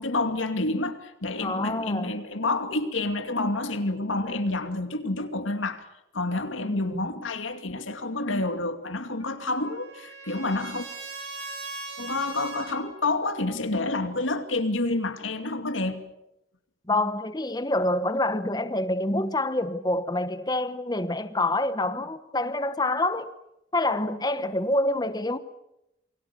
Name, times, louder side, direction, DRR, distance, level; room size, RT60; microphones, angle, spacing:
voice 1, 0.0-5.9 6.1-10.9 12.0-16.1, left 2 dB, 85° left, 2.5 m, -29 dB
voice 2, 1.4-2.1 6.7-7.0 16.9-23.3 23.7-25.4, left 2 dB, 20° left, 1.2 m, -27 dB
Trumpet, 9.0-12.9, right 3 dB, 60° right, 7.8 m, -40 dB
28.0 x 23.5 x 7.0 m
head